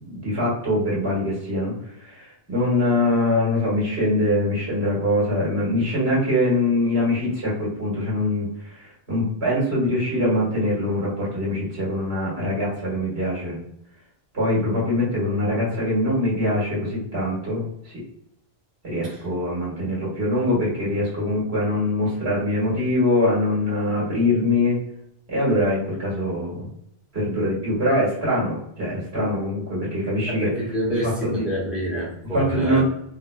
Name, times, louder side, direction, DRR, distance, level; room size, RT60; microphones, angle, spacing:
voice 1, 0.0-8.5 8.7-13.6 14.3-18.0 18.8-24.8 25.3-26.7 27.1-30.5 30.9-31.5 32.3-32.8, left 1 dB, 75° right, -6 dB, 2.0 m, -23 dB
voice 2, 30.3-32.8, equal, ahead, -7 dB, 1.3 m, -27 dB
4.0 x 2.9 x 2.2 m, 0.75 s
omnidirectional pair, 1.1 m